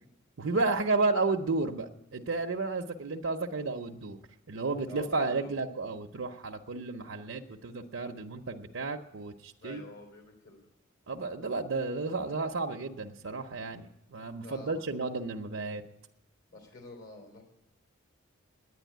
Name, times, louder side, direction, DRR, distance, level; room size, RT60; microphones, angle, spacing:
voice 1, 0.4-4.2 4.5-9.8 11.1-15.8, right 3 dB, 65° right, 2 dB, 0.7 m, -32 dB
voice 2, 4.9-5.6 9.6-10.7 14.3-15.0 16.5-17.4, left 2 dB, 60° left, 3 dB, 3.1 m, -48 dB
10.0 x 9.5 x 9.3 m, 0.86 s
head